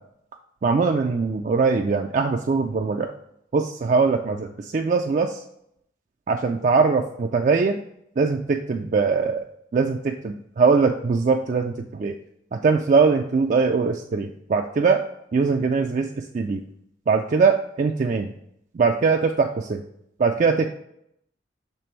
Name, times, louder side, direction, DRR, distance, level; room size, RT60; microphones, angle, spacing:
voice 1, 0.6-3.1 3.5-5.4 6.3-7.8 8.2-9.4 9.7-12.2 12.5-15.0 15.3-16.6 17.1-18.3 18.7-19.8 20.2-20.7, right 4 dB, 40° right, 3 dB, 0.3 m, -21 dB
6.8 x 3.4 x 4.4 m, 0.76 s
head